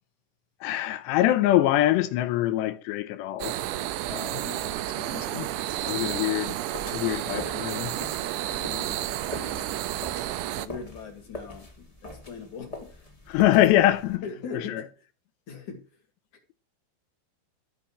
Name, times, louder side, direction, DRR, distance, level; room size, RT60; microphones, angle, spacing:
voice 1, 0.6-3.6 4.1-4.4 5.0-5.5 5.8-6.6 6.9-7.9 13.3-14.2 14.5-14.9, left 14 dB, 80° left, 2.6 m, -24 dB
sound 1, 3.4-10.7, right 13 dB, 80° right, 2.7 m, -31 dB
voice 2, 4.3-4.8 8.5-9.8 10.6-13.1 14.2-14.9 15.5-15.8, left 5 dB, 50° left, 2.7 m, -41 dB
sound 2, 6.7-14.1, left 1 dB, 15° left, 1.1 m, -43 dB
14.5 x 5.7 x 7.3 m
omnidirectional pair, 5.6 m